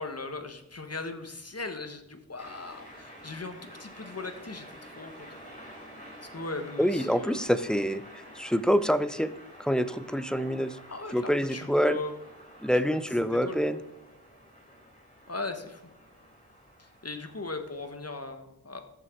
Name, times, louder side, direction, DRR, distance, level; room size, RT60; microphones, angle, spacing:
voice 1, 0.0-5.3 6.3-7.5 10.9-12.1 13.4-13.6 15.3-15.8 16.8-18.9, left 3 dB, 40° left, 7 dB, 1.4 m, -38 dB
sound 1, 2.4-17.9, equal, 20° left, 4.9 m, -50 dB
voice 2, 6.8-8.0 8.4-10.8 11.1-12.0 12.6-13.8, equal, ahead, 13 dB, 0.5 m, -26 dB
14.0 x 6.3 x 4.6 m, 0.88 s
wide cardioid pair, 65°, 38 cm